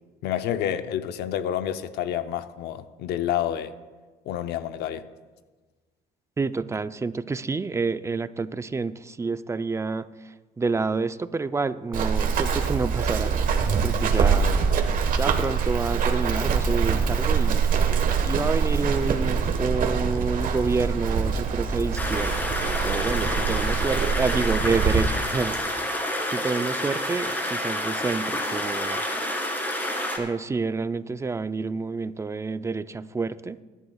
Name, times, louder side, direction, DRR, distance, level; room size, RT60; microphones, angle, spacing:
voice 1, 0.2-3.7 4.3-5.0, left 10 dB, 75° left, 11 dB, 0.7 m, -29 dB
voice 2, 6.4-10.1 10.6-13.3 13.8-14.6 15.2-17.7 18.3-26.0 26.3-29.0 30.2-33.6, right 4 dB, 15° right, 13 dB, 0.4 m, -28 dB
Run, 11.9-25.0, right 6 dB, 55° right, 1.3 m, -24 dB
sound 1, 22.0-30.2, left 1 dB, 10° left, 2.2 m, -28 dB
21.5 x 11.0 x 2.3 m, 1.3 s
cardioid pair, 110°, 17 cm